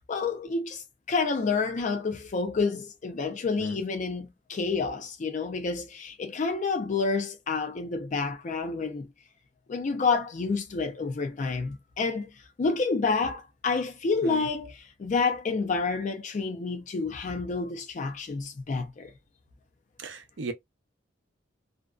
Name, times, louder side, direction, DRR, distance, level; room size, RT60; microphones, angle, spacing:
voice 1, 0.1-9.1 9.7-12.3 12.6-19.1, left 4 dB, 40° left, 0.4 m, -29 dB
voice 2, 20.0-20.5, right 4 dB, 70° right, 0.5 m, -36 dB
2.5 x 2.1 x 2.3 m
head